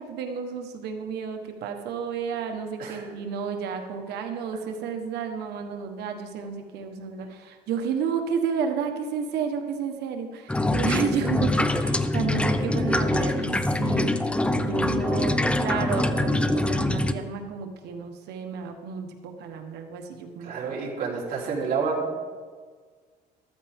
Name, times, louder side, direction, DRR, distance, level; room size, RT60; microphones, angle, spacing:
voice 1, 0.0-20.8, right 6 dB, 80° right, 5 dB, 1.3 m, -32 dB
sound 1, 10.5-17.1, left 1 dB, 5° left, 0.6 m, -24 dB
voice 2, 20.4-22.0, right 5 dB, 60° right, -4 dB, 3.8 m, -29 dB
14.0 x 13.5 x 3.6 m, 1.5 s
cardioid pair, 110°, 17 cm